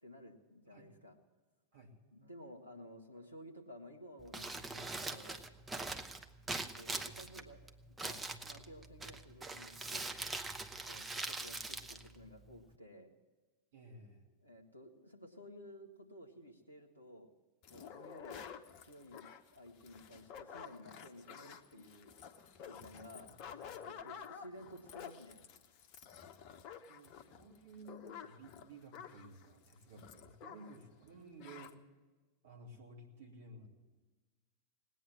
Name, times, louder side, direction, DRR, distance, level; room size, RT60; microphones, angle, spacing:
voice 1, 0.0-1.2 2.1-5.4 6.6-7.6 8.0-10.2 10.9-13.1 14.4-17.3 17.7-18.4 18.8-22.1 22.6-23.3 23.7-25.5, equal, 85° right, 2 dB, 1.7 m, -54 dB
Crumpling crinkling, 4.2-12.8, right 3 dB, 10° right, 0.9 m, -43 dB
voice 2, 13.7-14.3 23.3-23.9 26.7-31.8 32.4-33.7, right 2 dB, 55° right, 1 dB, 3.0 m, -55 dB
sound 1, 17.6-30.8 31.1-31.2 31.4-31.7, left 8 dB, 40° left, 0.9 m, -51 dB
19.0 x 9.2 x 7.4 m, 1.2 s
figure-of-eight pair, 90°, 0 cm